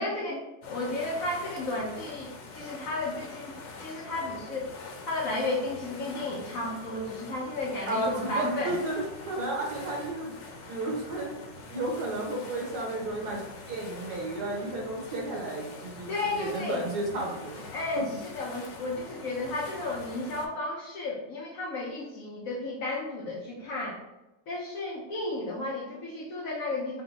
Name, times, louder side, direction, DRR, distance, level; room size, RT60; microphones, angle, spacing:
voice 1, 0.0-4.7 5.1-8.8 16.1-16.8 17.7-24.0 24.5-27.0, left 2 dB, 65° left, -3 dB, 0.9 m, -33 dB
sound 1, 0.6-20.5, left 3 dB, 85° left, 1.4 m, -44 dB
voice 2, 7.9-10.3 10.7-11.4 11.7-17.6 18.0-18.1, right 2 dB, 65° right, -1 dB, 1.4 m, -33 dB
4.1 x 2.1 x 4.0 m, 1.0 s
omnidirectional pair, 2.0 m